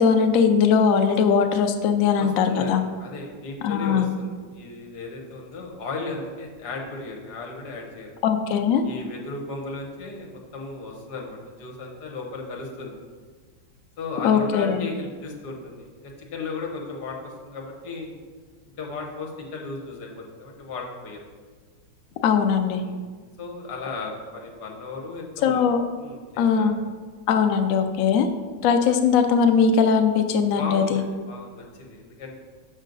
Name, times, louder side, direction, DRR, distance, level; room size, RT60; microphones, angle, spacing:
voice 1, 0.0-2.8 3.6-4.1 8.2-8.8 14.2-14.9 22.2-22.8 25.4-25.8 26.4-26.8 27.3-28.3 28.6-31.0, left 6 dB, 80° left, 6 dB, 0.7 m, -20 dB
voice 2, 2.2-8.1 8.8-13.0 14.0-18.2 18.8-21.2 22.7-23.0 23.4-25.7 26.0-26.7 30.6-32.4, left 3 dB, 65° left, 0 dB, 1.6 m, -35 dB
6.4 x 6.3 x 3.9 m, 1.5 s
omnidirectional pair, 2.0 m